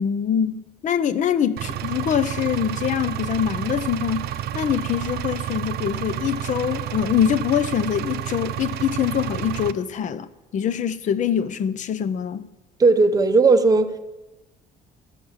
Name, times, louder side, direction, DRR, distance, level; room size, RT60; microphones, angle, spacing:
voice 1, 0.0-4.2 4.5-10.3 10.5-12.4, left 8 dB, 45° left, 0.6 m, -24 dB
Engine, 1.6-9.7, right 11 dB, 70° right, 0.6 m, -30 dB
voice 2, 12.8-14.0, right 3 dB, 20° right, 0.7 m, -16 dB
13.5 x 6.4 x 7.0 m
cardioid pair, 110°, 17 cm